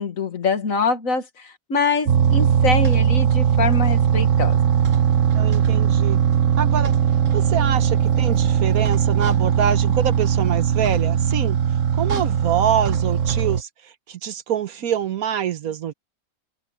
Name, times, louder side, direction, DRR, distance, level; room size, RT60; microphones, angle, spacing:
voice 1, 0.0-4.6, left 4 dB, 65° left, 2.4 m, -24 dB
sound 1, 2.1-13.6, right 8 dB, 60° right, 1.5 m, -19 dB
voice 2, 5.3-6.2 6.6-6.9 7.3-11.6 11.9-15.9, right 9 dB, 80° right, 1.5 m, -25 dB
open air
omnidirectional pair, 1.5 m